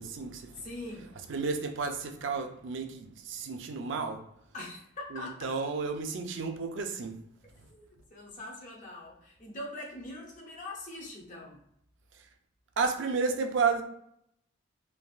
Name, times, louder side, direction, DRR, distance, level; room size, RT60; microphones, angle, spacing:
voice 1, 0.0-0.7 1.3-4.2 5.1-7.2 12.8-13.8, right 4 dB, 70° right, 0.4 m, -32 dB
voice 2, 0.6-1.1 4.5-5.5 7.7-11.6, left 1 dB, 40° left, 0.7 m, -43 dB
3.4 x 2.4 x 2.3 m
head